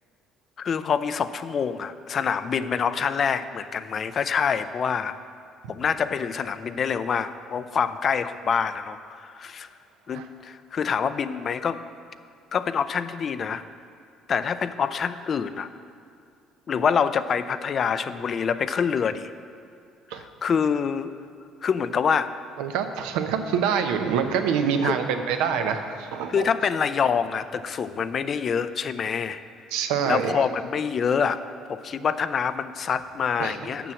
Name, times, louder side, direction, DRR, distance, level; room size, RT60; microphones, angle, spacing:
voice 1, 0.6-5.2 5.7-9.7 10.1-11.8 12.5-13.6 14.3-15.7 16.7-19.3 20.1-21.1 21.6-22.3 24.8-25.0 26.3-29.4 30.1-31.4 31.7-33.9, left 6 dB, 45° left, 13 dB, 0.4 m, -26 dB
voice 2, 22.6-26.5 29.7-30.5 33.4-33.5, right 7 dB, 85° right, 7 dB, 0.6 m, -25 dB
6.9 x 6.1 x 7.0 m, 2.4 s
supercardioid pair, 85°, 0 cm